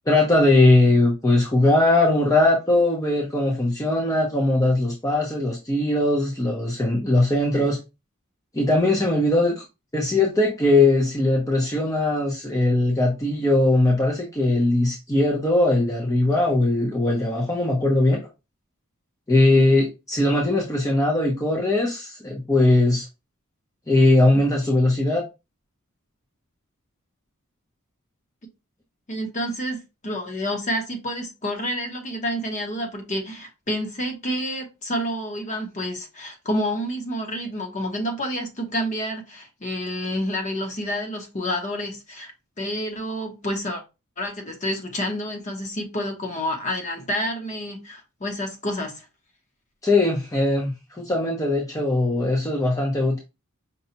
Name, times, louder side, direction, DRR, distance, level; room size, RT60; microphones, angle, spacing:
voice 1, 0.1-7.8 8.5-9.6 9.9-18.2 19.3-23.0 23.9-25.2 49.8-53.2, left 2 dB, 15° left, 0.7 m, -20 dB
voice 2, 29.1-42.3 42.6-43.8 44.2-49.0, equal, 35° left, 0.9 m, -29 dB
5.3 x 2.3 x 2.8 m
head